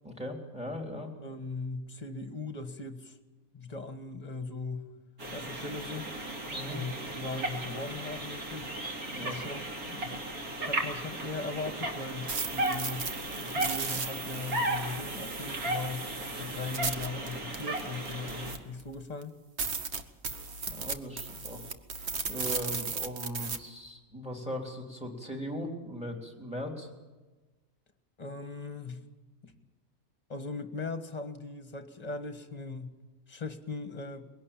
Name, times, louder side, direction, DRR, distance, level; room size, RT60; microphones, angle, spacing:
voice 1, 0.0-1.1 6.5-6.7 9.1-9.4 20.7-21.7 22.3-26.9, equal, 5° right, 3 dB, 3.4 m, -39 dB
voice 2, 1.2-3.2 3.5-4.9 5.3-6.1 6.7-8.7 9.2-9.6 9.9-13.1 13.4-16.1 16.4-19.3 28.2-29.0 29.4-29.5 30.3-33.0 33.3-34.3, left 3 dB, 30° left, 9 dB, 1.5 m, -39 dB
sound 1, 5.2-18.5, right 1 dB, 75° right, 3.1 m, -36 dB
sound 2, 12.0-18.8 19.2-19.3 19.6-23.6, right 4 dB, 50° right, 1.4 m, -36 dB
22.0 x 17.5 x 8.7 m, 1.2 s
omnidirectional pair, 1.5 m